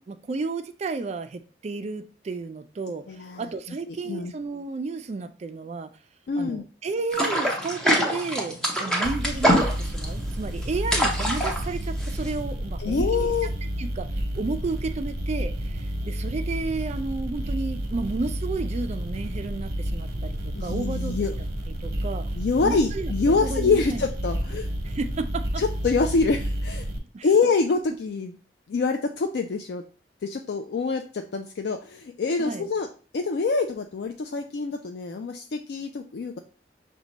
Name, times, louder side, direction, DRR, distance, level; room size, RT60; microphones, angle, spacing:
voice 1, 0.1-5.9 6.4-13.3 13.8-14.1 14.4-21.2 21.8-22.3 22.6-24.0 24.8-25.6 27.1-27.3 32.4-32.7, right 3 dB, 40° right, 0.3 m, -32 dB
voice 2, 3.1-3.5 3.9-4.3 6.3-6.6 12.8-13.5 20.6-21.4 22.4-24.7 25.6-26.9 27.2-28.4 28.7-29.8 30.2-32.9 33.1-36.4, left 4 dB, 65° left, 0.4 m, -25 dB
sound 1, 7.1-12.4, equal, 5° left, 0.8 m, -24 dB
sound 2, 9.0-27.0, equal, 60° right, 0.8 m, -30 dB
6.0 x 2.2 x 3.9 m
head